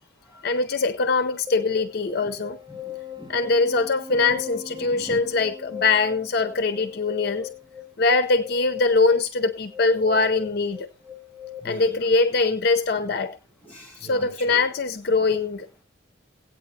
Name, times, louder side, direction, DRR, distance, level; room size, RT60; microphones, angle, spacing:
voice 1, 0.4-2.6 3.3-7.5 8.0-10.9 11.6-13.4 14.0-15.7, left 3 dB, 55° left, 0.7 m, -22 dB
sound 1, 1.5-11.6, left 9 dB, 20° right, 0.9 m, -39 dB
voice 2, 2.7-3.3 3.7-3.8 4.1-4.2 4.8-5.3 11.6-12.0 13.0-13.1 13.6-14.6 15.2-15.3, equal, 10° left, 7.1 m, -42 dB
17.0 x 8.9 x 2.7 m
head